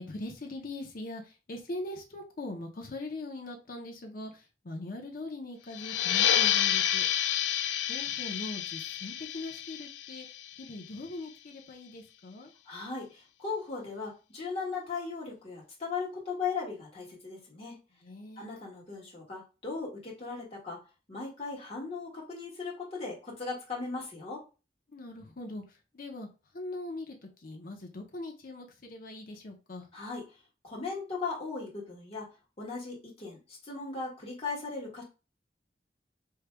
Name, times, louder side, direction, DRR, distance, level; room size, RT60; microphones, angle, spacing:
voice 1, 0.0-7.1 7.9-10.3 10.6-12.5 18.0-18.4 24.9-25.6 25.9-26.3 26.5-29.9, left 2 dB, 55° left, 0.8 m, -41 dB
sound 1, 5.7-11.0, left 10 dB, 85° left, 0.4 m, -29 dB
voice 2, 12.7-17.8 18.4-20.8 21.1-24.4 29.9-30.2 30.6-32.3 32.6-35.0, left 4 dB, 35° left, 1.8 m, -37 dB
4.6 x 3.2 x 2.2 m
head